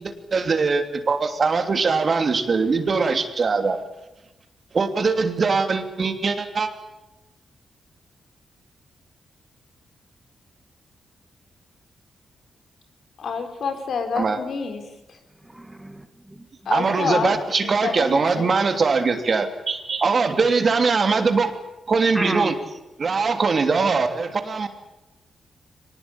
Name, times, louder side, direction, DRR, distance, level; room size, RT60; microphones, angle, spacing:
voice 1, 0.0-3.8 4.7-6.7 14.2-14.4 16.7-21.5 21.9-22.5 23.0-24.7, right 4 dB, 45° right, 7 dB, 3.0 m, -21 dB
voice 2, 13.2-15.2 16.6-18.7, left 5 dB, 70° left, 6 dB, 4.3 m, -28 dB
voice 3, 15.4-16.5 16.8-17.1 22.1-22.6, right 1 dB, 10° right, 9 dB, 1.9 m, -33 dB
24.0 x 20.0 x 8.9 m, 1.0 s
cardioid pair, 110°, 0 cm